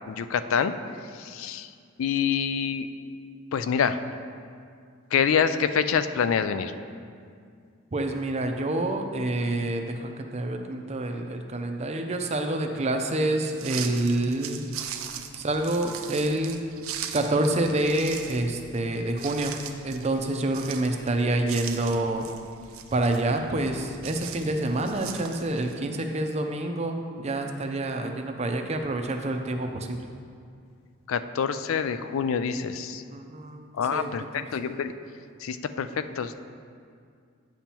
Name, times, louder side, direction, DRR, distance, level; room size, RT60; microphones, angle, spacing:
voice 1, 0.1-0.7 1.1-1.7 2.0-2.9 3.5-4.0 5.1-6.7 31.1-33.0 33.8-34.9 35.4-36.4, left 7 dB, 70° left, 11 dB, 0.4 m, -26 dB
voice 2, 7.9-14.6 15.4-16.6 17.1-19.6 19.8-22.3 22.9-30.1 33.1-33.6 33.9-34.1 34.4-34.5, right 1 dB, 30° right, 4 dB, 0.5 m, -27 dB
sound 1, 13.5-25.8, right 9 dB, 85° right, 0.5 m, -40 dB
9.2 x 7.1 x 2.9 m, 2.3 s
head